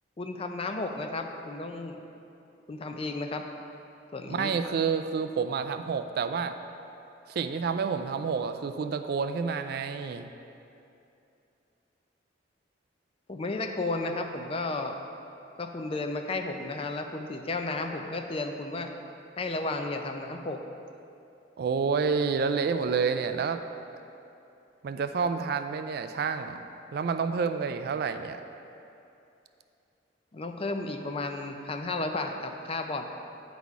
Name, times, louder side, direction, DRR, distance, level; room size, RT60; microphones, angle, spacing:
voice 1, 0.2-2.0 2.7-3.5 4.1-4.5 13.3-15.0 15.6-18.9 19.4-20.6 30.3-33.0, left 2 dB, 30° left, 5 dB, 0.4 m, -33 dB
voice 2, 4.3-6.6 7.3-10.3 21.6-23.6 24.8-26.6 26.9-28.4, right 5 dB, 55° right, 8 dB, 0.3 m, -29 dB
9.5 x 4.1 x 4.6 m, 2.7 s
head